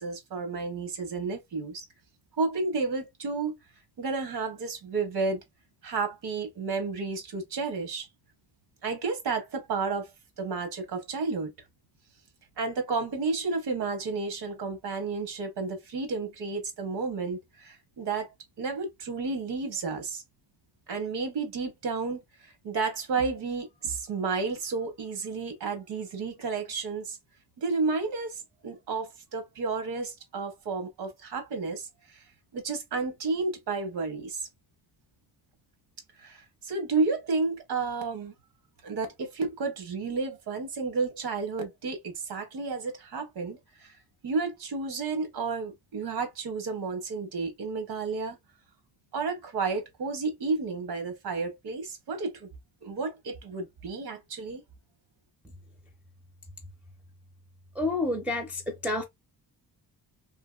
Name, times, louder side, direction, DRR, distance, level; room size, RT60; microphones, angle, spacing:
voice 1, 0.0-1.8 2.4-3.6 4.0-5.4 5.8-8.1 8.8-10.1 10.4-11.5 12.6-18.3 18.6-20.2 20.9-27.2 27.6-32.2 32.5-34.5 36.2-38.3 38.8-43.9 44.2-48.4 49.1-52.5 52.8-54.6, right 4 dB, 85° right, 0.9 m, -31 dB
voice 2, 57.8-59.0, left 2 dB, 5° right, 0.4 m, -29 dB
2.8 x 2.5 x 2.3 m
wide cardioid pair, 140°, 38 cm